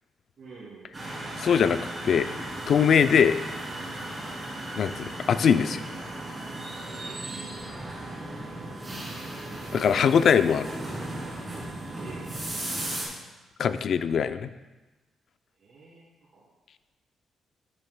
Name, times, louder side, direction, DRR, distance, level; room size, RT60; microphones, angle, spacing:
voice 1, 0.4-1.3 6.8-7.5 12.0-12.5 15.6-16.4, right 4 dB, 50° right, -9 dB, 2.6 m, -48 dB
sound 1, 0.9-13.1, right 1 dB, 15° right, 2.8 m, -36 dB
voice 2, 1.4-2.3 2.7-3.4 4.8-5.8 9.7-10.7 13.6-14.5, left 7 dB, 55° left, 11 dB, 0.4 m, -22 dB
11.0 x 9.7 x 2.2 m, 1.2 s
cardioid pair, 145°, 0 cm